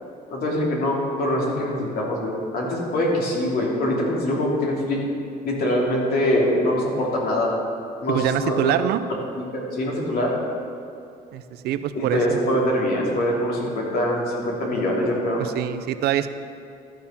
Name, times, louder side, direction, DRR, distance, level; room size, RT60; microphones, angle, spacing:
voice 1, 0.3-5.0 5.4-7.5 8.0-8.7 9.3-10.3 11.9-15.4, left 1 dB, 60° left, -3 dB, 2.8 m, -23 dB
voice 2, 8.1-9.0 11.3-12.4 15.4-16.3, right 11 dB, 75° right, 11 dB, 0.6 m, -24 dB
13.0 x 6.7 x 5.7 m, 2.5 s
cardioid pair, 110°, 17 cm